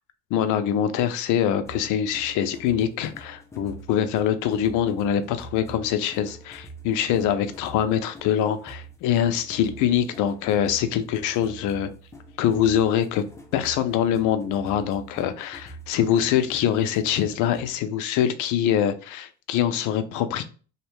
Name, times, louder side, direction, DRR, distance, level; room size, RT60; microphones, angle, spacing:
voice 1, 0.3-11.9 12.4-13.2 13.5-20.4, left 9 dB, 70° left, 0.5 m, -24 dB
sound 1, 1.6-17.8, right 2 dB, 10° left, 0.4 m, -45 dB
2.7 x 2.1 x 3.0 m
cardioid pair, 115°, 31 cm